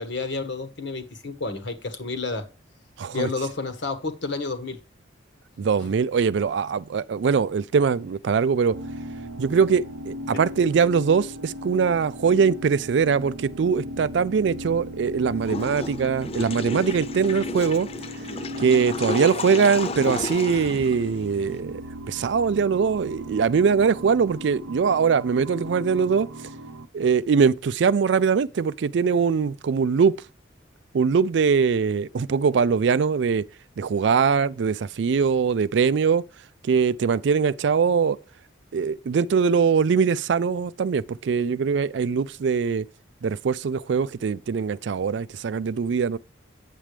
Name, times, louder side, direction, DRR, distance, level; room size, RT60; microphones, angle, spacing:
voice 1, 0.0-2.4 3.1-4.8 5.8-5.9, left 3 dB, 65° left, 1.3 m, -30 dB
voice 2, 3.0-3.3 5.6-8.8 9.4-17.9 18.6-21.8 22.1-26.3 26.9-30.2 30.9-33.4 33.8-36.2 36.6-38.2 38.7-42.8 43.2-46.2, right 6 dB, 60° right, 0.4 m, -22 dB
sound 1, 8.7-26.9, equal, 90° right, 0.7 m, -37 dB
Water / Toilet flush, 15.4-21.6, left 3 dB, 30° left, 0.4 m, -33 dB
8.3 x 7.4 x 3.3 m
head